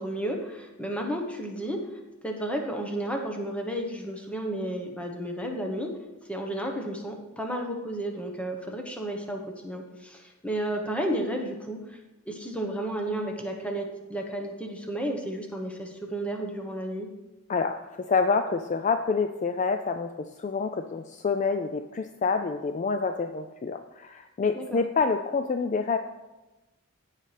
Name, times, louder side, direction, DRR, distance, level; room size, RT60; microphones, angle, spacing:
voice 1, 0.0-1.8 2.2-5.9 6.3-12.0 12.3-17.1 24.5-24.8, right 1 dB, 5° left, 2 dB, 1.0 m, -32 dB
voice 2, 17.5-20.1 20.4-26.0, left 4 dB, 35° left, 7 dB, 0.3 m, -27 dB
15.5 x 5.6 x 3.3 m, 1.1 s
head